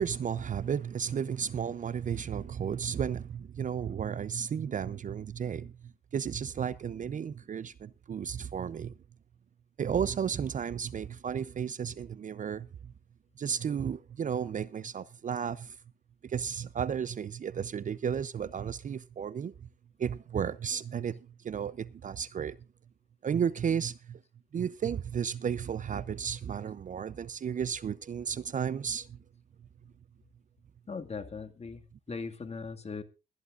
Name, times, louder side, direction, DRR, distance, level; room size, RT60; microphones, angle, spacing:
voice 1, 0.0-5.7 6.1-8.9 9.8-12.9 13.4-15.8 16.2-19.5 20.0-21.2 21.4-22.6 23.2-24.2 24.5-29.2, right 7 dB, 40° right, 0.6 m, -33 dB
voice 2, 30.9-33.0, left 4 dB, 30° left, 2.0 m, -39 dB
22.0 x 11.0 x 2.5 m
cardioid pair, 90°, 20 cm